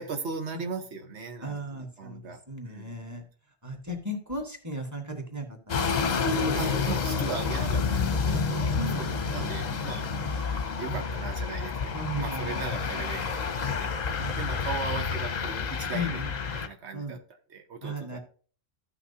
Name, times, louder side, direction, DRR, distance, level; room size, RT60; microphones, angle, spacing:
voice 1, 0.0-2.4 2.6-3.0 6.5-10.1 10.6-16.2 16.5-17.2 17.5-18.2, right 4 dB, 85° right, 5 dB, 1.3 m, -38 dB
voice 2, 1.4-3.2 3.6-5.9 8.3-8.4 8.8-9.8 10.8-11.0 11.9-13.3 14.2-14.4 15.9-16.3 16.9-17.2 17.8-18.2, equal, 15° right, 2 dB, 1.6 m, -36 dB
sound 1, 5.7-16.7, left 5 dB, 45° left, 0.8 m, -29 dB
14.0 x 5.9 x 2.8 m, 0.42 s
omnidirectional pair, 1.1 m